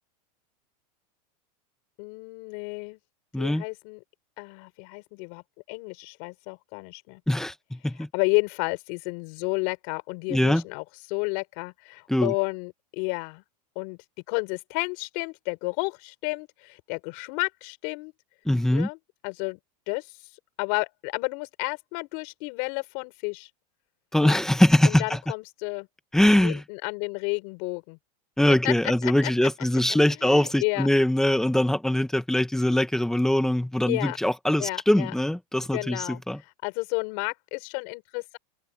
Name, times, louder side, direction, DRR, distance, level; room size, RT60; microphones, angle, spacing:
voice 1, 2.0-3.0 3.4-4.0 4.4-5.4 5.7-7.2 8.1-13.4 13.8-14.0 14.3-18.1 18.7-19.0 19.2-19.6 19.9-20.1 20.6-23.5 24.2-24.4 24.8-25.9 26.4-28.0 28.6-28.7 29.0-29.3 29.9-30.9 33.9-34.2 34.6-35.1 35.7-36.2 36.6-38.4, left 33 dB, 55° left, 5.6 m, -31 dB
voice 2, 3.3-3.6 7.3-8.1 10.3-10.6 12.1-12.3 18.4-18.9 24.1-25.2 26.1-26.6 28.4-36.4, left 1 dB, ahead, 1.6 m, -22 dB
supercardioid pair, 145°, 20 cm